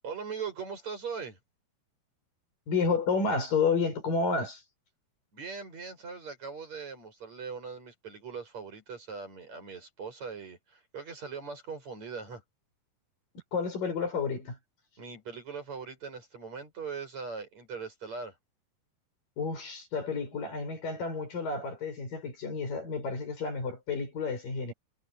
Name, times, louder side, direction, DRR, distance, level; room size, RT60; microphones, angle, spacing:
voice 1, 0.0-1.4 5.3-12.4 15.0-18.4, right 5 dB, 45° right, 8.6 m, -40 dB
voice 2, 2.7-4.6 13.5-14.6 19.4-24.7, left 4 dB, 60° left, 8.2 m, -30 dB
omnidirectional pair, 4.4 m